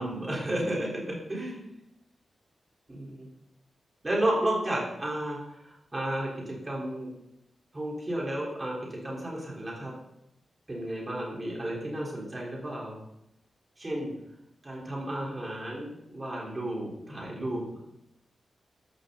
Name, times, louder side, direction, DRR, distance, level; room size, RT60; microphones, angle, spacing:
voice 1, 0.0-1.7 2.9-3.3 4.0-5.4 5.9-7.1 7.7-8.8 9.0-9.9 10.7-13.0 13.8-14.1 14.6-17.6, right 1 dB, 20° right, -3 dB, 4.5 m, -32 dB
14.0 x 11.5 x 4.2 m, 0.84 s
wide cardioid pair, 165°, 0 cm